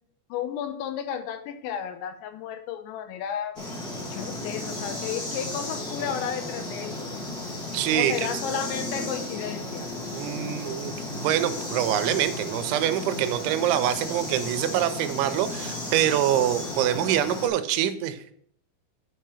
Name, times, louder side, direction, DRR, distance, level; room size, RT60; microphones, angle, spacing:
voice 1, 0.3-3.6 4.1-7.3 8.0-9.9, left 8 dB, 80° left, 7 dB, 3.0 m, -33 dB
sound 1, 3.5-17.5, left 1 dB, 40° left, 1.3 m, -34 dB
voice 2, 7.7-8.1 10.1-18.2, right 11 dB, 85° right, 11 dB, 3.0 m, -25 dB
6.2 x 5.7 x 6.3 m, 0.66 s
omnidirectional pair, 5.3 m